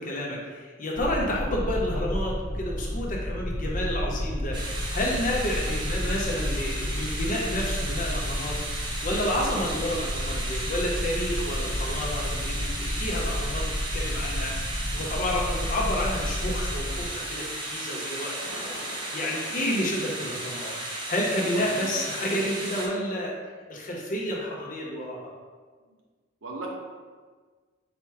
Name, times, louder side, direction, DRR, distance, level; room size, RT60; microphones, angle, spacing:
voice 1, 0.0-8.5 9.0-13.7 13.9-18.7 19.1-20.7 21.1-23.3 23.7-25.3, left 1 dB, 45° left, -3 dB, 0.8 m, -30 dB
sound 1, 1.0-17.1, left 1 dB, 15° left, 0.4 m, -31 dB
sound 2, 4.5-22.9, right 1 dB, 25° right, 0.7 m, -35 dB
voice 2, 21.5-22.0 25.8-25.9 26.4-26.7, right 2 dB, 75° right, -1 dB, 0.8 m, -38 dB
4.3 x 2.2 x 4.7 m, 1.5 s
head